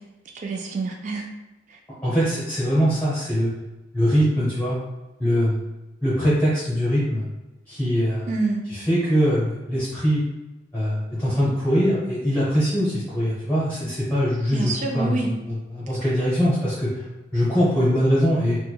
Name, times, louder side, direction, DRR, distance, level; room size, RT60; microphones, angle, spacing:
voice 1, 0.3-1.2 8.3-8.6 14.5-15.3, right 3 dB, 45° right, 1 dB, 0.4 m, -26 dB
voice 2, 2.0-3.5 3.9-4.8 5.2-5.7 6.0-7.2 7.7-8.3 8.7-10.2 10.7-17.0 17.3-18.6, equal, 10° left, -10 dB, 0.9 m, -22 dB
4.5 x 2.2 x 2.3 m, 1.0 s
head